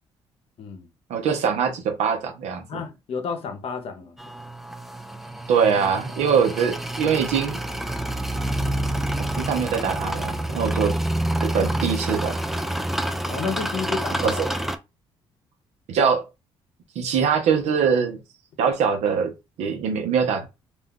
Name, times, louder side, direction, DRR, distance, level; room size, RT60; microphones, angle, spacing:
voice 1, 0.6-0.9 2.7-4.2 13.3-14.4, left 5 dB, 60° left, 0.8 m, -31 dB
voice 2, 1.1-2.8 5.5-7.6 9.4-11.0 11.4-12.4 14.2-14.5 15.9-16.2 17.0-18.2 18.6-19.3 19.6-20.5, right 6 dB, 75° right, 0.8 m, -23 dB
sound 1, 4.2-14.8, right 1 dB, 5° right, 0.4 m, -28 dB
2.5 x 2.3 x 3.7 m
supercardioid pair, 70°, 11 cm